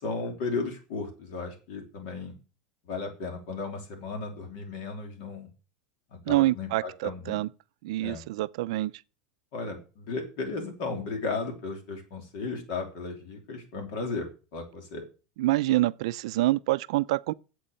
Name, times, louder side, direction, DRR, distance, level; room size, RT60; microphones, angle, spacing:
voice 1, 0.0-2.4 2.9-5.5 6.3-7.4 8.0-8.2 9.5-15.0, left 4 dB, 55° left, 3.0 m, -35 dB
voice 2, 6.3-7.5 7.8-8.9 15.4-17.3, right 17 dB, 65° right, 0.6 m, -26 dB
8.4 x 7.9 x 7.8 m
supercardioid pair, 175°, 4 cm